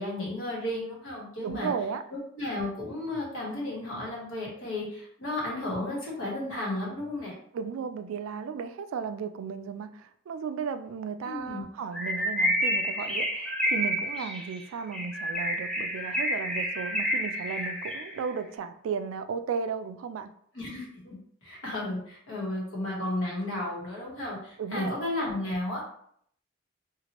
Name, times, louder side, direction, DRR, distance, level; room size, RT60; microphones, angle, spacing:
voice 1, 0.0-1.7 2.1-7.3 11.2-11.7 20.5-21.2 21.4-25.8, left 1 dB, 75° left, -4 dB, 1.2 m, -33 dB
voice 2, 1.4-2.0 7.5-20.3 24.6-24.9, right 6 dB, 90° right, 10 dB, 0.3 m, -35 dB
Bird, 11.9-18.2, equal, 5° left, 0.3 m, -29 dB
2.9 x 2.4 x 2.9 m, 0.65 s
head